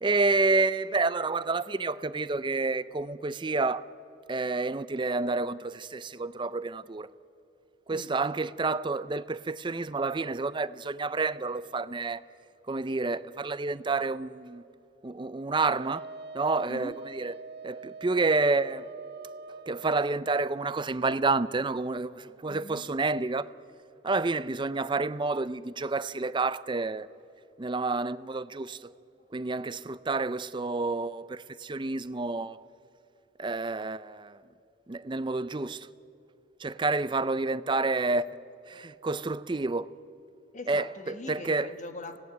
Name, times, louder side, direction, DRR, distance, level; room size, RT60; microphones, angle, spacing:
voice 1, 0.0-3.8 4.3-7.1 7.9-12.2 12.7-14.6 15.0-16.0 16.3-17.3 17.6-18.9 19.7-23.5 24.0-27.1 27.6-28.9 29.3-32.6 33.4-34.4 34.9-35.9 36.6-38.3 38.7-39.9 40.7-40.9 41.3-41.7, right 3 dB, 25° right, 0.5 m, -29 dB
Wind instrument woodwind instrument, 15.6-20.0, right 4 dB, 55° right, 0.7 m, -44 dB
voice 2, 22.4-22.9 40.5-42.2, left 2 dB, 40° left, 1.5 m, -42 dB
25.0 x 17.5 x 9.4 m
head